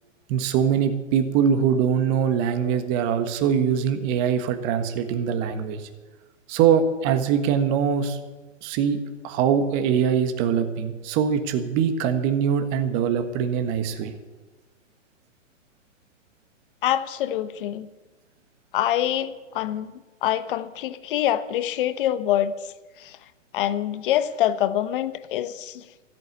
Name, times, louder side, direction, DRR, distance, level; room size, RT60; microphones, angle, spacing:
voice 1, 0.3-5.8 6.5-8.2 8.6-14.1, right 7 dB, 30° right, 8 dB, 1.5 m, -23 dB
voice 2, 16.8-17.9 18.7-19.9 20.2-22.5 23.0-23.2 23.5-25.8, left 12 dB, 45° left, 13 dB, 1.0 m, -25 dB
13.5 x 9.1 x 9.4 m, 1.2 s
hypercardioid pair, 125°, 38 cm